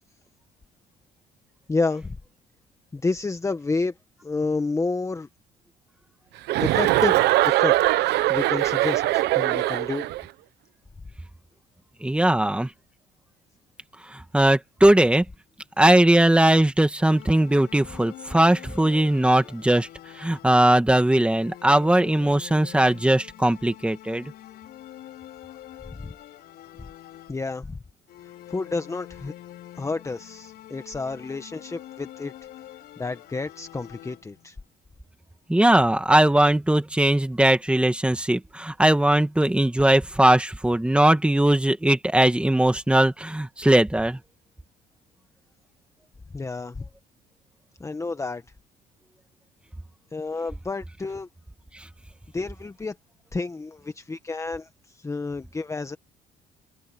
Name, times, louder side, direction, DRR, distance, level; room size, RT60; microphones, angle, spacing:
voice 1, 1.7-2.2 2.9-3.9 4.2-5.3 6.6-7.8 8.3-10.1 26.0-26.1 27.3-27.8 28.5-29.3 29.8-32.3 33.0-34.6 46.3-46.8 47.8-48.4 50.1-51.3 52.3-53.0 53.3-56.0, left 3 dB, 15° left, 1.2 m, -30 dB
Chuckle chortle, 6.5-10.2, right 16 dB, 80° right, 0.9 m, -21 dB
voice 2, 12.0-12.7 14.3-15.2 15.8-19.9 20.2-24.3 35.5-44.2, right 1 dB, 5° right, 2.1 m, -19 dB
sound 1, 17.1-20.8 21.2-27.7 28.1-34.5, left 13 dB, 70° left, 5.1 m, -45 dB
open air
cardioid pair, 110°, 17 cm